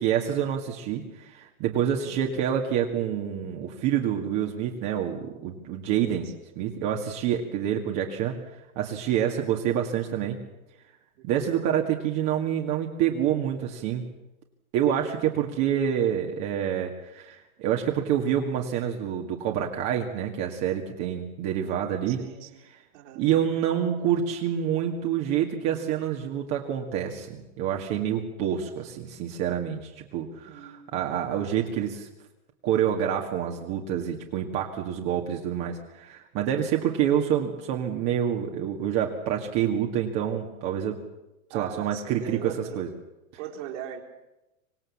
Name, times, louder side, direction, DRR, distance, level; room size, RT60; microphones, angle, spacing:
voice 1, 0.0-6.3 6.6-8.4 8.8-10.4 11.2-14.0 14.7-22.2 23.2-32.1 32.6-41.0 41.5-42.9, right 9 dB, 35° right, 1 dB, 2.1 m, -27 dB
voice 2, 22.1-22.6 22.9-23.2 30.5-31.0 36.7-36.9 41.5-42.8 43.4-44.0, right 9 dB, 55° right, 1 dB, 4.2 m, -40 dB
25.5 x 18.5 x 7.3 m, 0.98 s
supercardioid pair, 150°, 42 cm